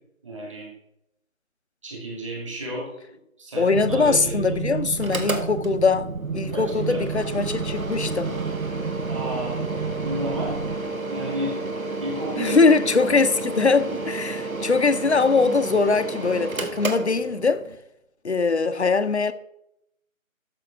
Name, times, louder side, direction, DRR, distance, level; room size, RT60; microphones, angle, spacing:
voice 1, 0.2-0.7 1.8-3.0 3.4-4.8 5.1-5.2 6.5-7.2 9.1-9.6 10.0-10.6 11.1-11.6 12.0-12.7, right 1 dB, 20° right, 2.2 m, -32 dB
voice 2, 3.6-8.3 12.4-17.6 18.2-19.3, left 4 dB, 55° left, 0.7 m, -22 dB
sound 1, 3.7-10.8, right 5 dB, 55° right, 0.9 m, -31 dB
Mechanical fan, 4.9-17.8, right 2 dB, 80° right, 1.6 m, -32 dB
13.0 x 6.9 x 3.5 m
figure-of-eight pair, 165°, 41 cm